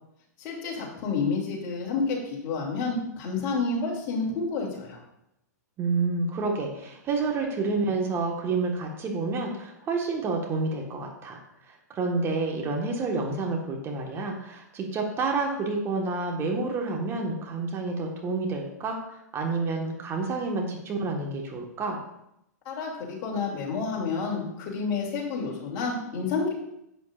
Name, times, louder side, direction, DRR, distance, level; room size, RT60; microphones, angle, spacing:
voice 1, 0.4-5.0 22.6-26.6, left 4 dB, 40° left, -1 dB, 2.7 m, -29 dB
voice 2, 5.8-11.4 11.7-22.0, right 3 dB, 25° right, 1 dB, 1.5 m, -29 dB
11.0 x 8.0 x 2.5 m, 0.82 s
hypercardioid pair, 110°, 9 cm